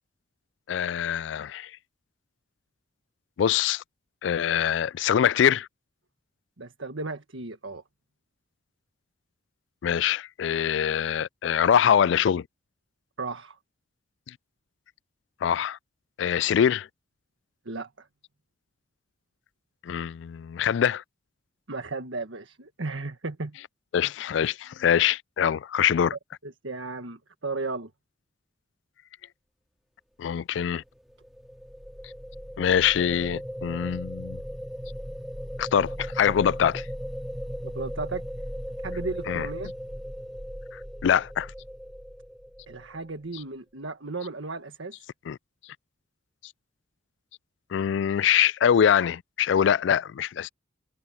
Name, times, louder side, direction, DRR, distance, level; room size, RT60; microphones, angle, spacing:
voice 1, 0.7-1.7 3.4-3.8 4.2-5.7 9.8-12.4 15.4-15.8 16.2-16.9 19.8-21.0 23.9-26.2 30.2-30.8 32.6-34.4 35.6-36.9 39.3-39.5 41.0-41.5 45.3-45.4 47.7-50.5, left 8 dB, 65° left, 0.3 m, -24 dB
voice 2, 6.6-7.8 13.2-13.6 17.6-18.1 21.7-23.6 26.4-27.9 37.6-38.2 38.8-39.7 42.7-44.9, right 3 dB, 80° right, 1.6 m, -35 dB
sound 1, 31.0-43.1, equal, ahead, 2.4 m, -37 dB
head